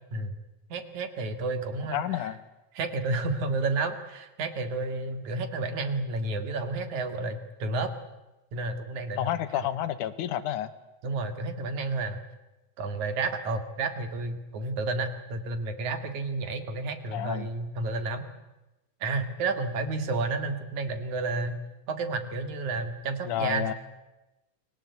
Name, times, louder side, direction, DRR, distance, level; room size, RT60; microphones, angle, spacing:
voice 1, 0.7-2.2 2.8-7.9 8.5-9.3 11.0-12.2 12.8-18.2 19.0-21.5 21.9-23.7, right 3 dB, 70° right, 9 dB, 3.5 m, -31 dB
voice 2, 1.9-2.4 9.2-10.7 17.1-17.5 23.3-23.7, left 11 dB, 80° left, 13 dB, 2.7 m, -30 dB
29.5 x 21.5 x 8.3 m, 1.0 s
omnidirectional pair, 3.6 m